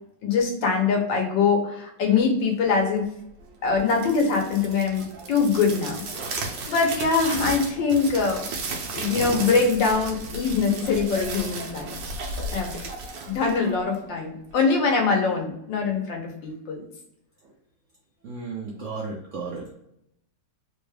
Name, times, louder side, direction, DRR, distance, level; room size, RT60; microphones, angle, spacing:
voice 1, 0.2-3.0 3.6-6.0 6.7-8.5 8.9-12.0 12.5-12.8 13.3-16.8, left 5 dB, 85° left, 1 dB, 1.6 m, -23 dB
sound 1, 3.7-14.1, right 3 dB, 85° right, 1.5 m, -34 dB
voice 2, 18.2-19.7, right 4 dB, 70° right, -2 dB, 0.7 m, -34 dB
3.9 x 2.3 x 3.2 m, 0.78 s
omnidirectional pair, 1.9 m